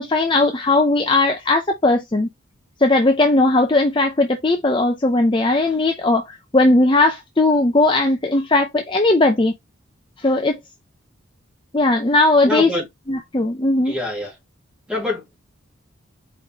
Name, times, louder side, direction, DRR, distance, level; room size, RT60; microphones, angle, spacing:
voice 1, 0.0-2.3 2.8-9.5 10.2-10.6 11.7-12.7 13.1-14.0, left 2 dB, 25° left, 0.5 m, -18 dB
voice 2, 12.4-12.8 13.9-14.3 14.9-15.3, left 2 dB, 5° right, 2.1 m, -25 dB
4.8 x 3.8 x 2.9 m
head